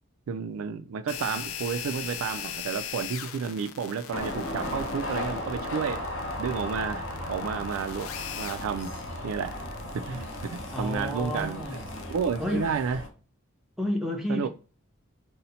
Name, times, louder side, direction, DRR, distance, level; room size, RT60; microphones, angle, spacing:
voice 1, 0.3-6.0 6.4-8.9 9.2-9.6 9.9-13.0 14.3-14.5, right 6 dB, 80° right, 0.3 m, -31 dB
sound 1, 1.1-12.4, left 9 dB, 85° left, 0.3 m, -40 dB
sound 2, 4.1-13.1, left 1 dB, 65° left, 0.7 m, -36 dB
voice 2, 10.7-12.1 12.4-12.7 13.8-14.5, left 1 dB, ahead, 0.4 m, -31 dB
2.7 x 2.1 x 3.9 m
head